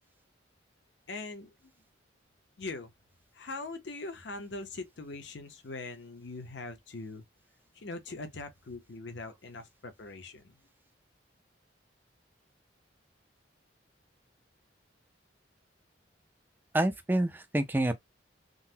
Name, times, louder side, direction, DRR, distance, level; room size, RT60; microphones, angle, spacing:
voice 1, 1.1-1.5 2.6-2.9 3.3-7.2 7.7-10.5, left 3 dB, 70° left, 0.7 m, -41 dB
voice 2, 16.7-17.9, right 1 dB, 10° right, 0.3 m, -27 dB
3.8 x 2.0 x 2.7 m
head